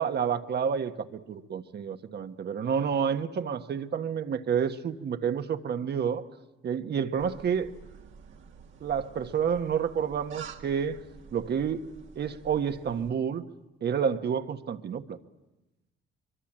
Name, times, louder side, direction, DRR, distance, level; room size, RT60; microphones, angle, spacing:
voice 1, 0.0-6.2 6.6-7.7 8.8-11.0 11.3-11.8 12.1-13.4 13.8-15.2, right 7 dB, 55° right, 8 dB, 1.4 m, -29 dB
sound 1, 7.2-13.1, right 7 dB, 75° right, 2.0 m, -49 dB
24.0 x 23.5 x 8.9 m, 1.0 s
cardioid pair, 90°, 20 cm